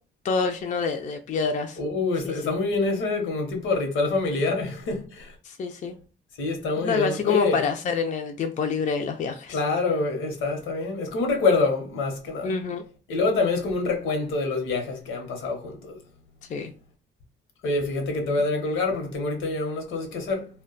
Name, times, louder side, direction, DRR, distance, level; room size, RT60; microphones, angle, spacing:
voice 1, 0.2-1.8 2.3-2.5 5.4-5.9 6.8-9.6 12.4-12.8 16.5-16.7, left 5 dB, 40° left, 0.4 m, -27 dB
voice 2, 1.8-5.3 6.4-7.6 9.5-12.6 13.1-16.0 17.6-20.5, left 3 dB, 80° left, 0.9 m, -26 dB
2.2 x 2.2 x 3.8 m
cardioid pair, 90°, 20 cm